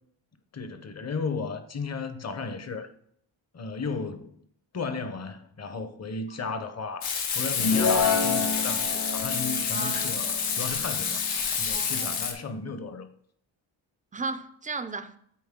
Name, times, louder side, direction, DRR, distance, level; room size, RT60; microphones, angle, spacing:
voice 1, 0.5-2.9 3.5-4.4 4.7-11.2 11.6-13.1, left 4 dB, 35° left, 0.7 m, -34 dB
Frying (food), 7.0-12.3, left 6 dB, 85° left, 1.2 m, -28 dB
sound 1, 7.5-11.1, left 5 dB, 70° left, 1.8 m, -28 dB
voice 2, 9.7-10.3 11.7-12.1 14.1-15.1, right 4 dB, 20° right, 0.4 m, -35 dB
8.6 x 3.9 x 3.6 m
cardioid pair, 100°, 47 cm